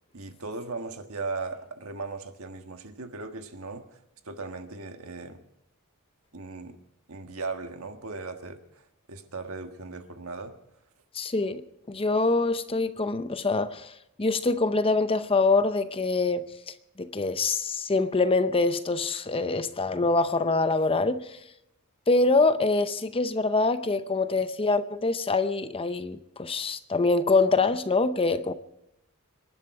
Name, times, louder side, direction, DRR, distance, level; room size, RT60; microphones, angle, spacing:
voice 1, 0.1-3.9 4.2-5.4 6.3-6.8 7.1-10.5, right 3 dB, 70° right, 1.5 m, -37 dB
voice 2, 11.1-13.9 14.2-21.3 22.1-28.5, left 3 dB, 25° left, 0.6 m, -25 dB
26.0 x 11.5 x 4.7 m
head